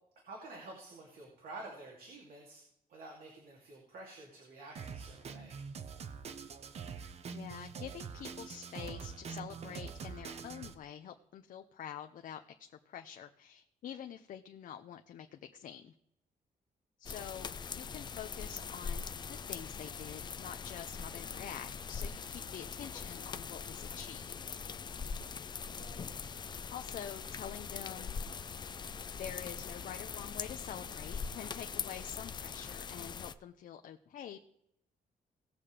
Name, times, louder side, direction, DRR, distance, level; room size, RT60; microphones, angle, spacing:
voice 1, 0.3-2.6 2.9-5.6 25.8-26.1, right 2 dB, 80° right, -2 dB, 2.7 m, -50 dB
Drum kit, 4.7-10.7, right 6 dB, 45° right, 0.8 m, -44 dB
voice 2, 7.3-12.4 12.9-15.9 17.0-19.0 19.3-24.6 26.7-28.1 29.2-34.4, left 9 dB, 65° left, 6 dB, 0.7 m, -46 dB
sound 1, 17.0-33.3, left 6 dB, 30° left, 0.4 m, -42 dB
18.5 x 7.3 x 3.4 m, 0.79 s
wide cardioid pair, 165°, 15 cm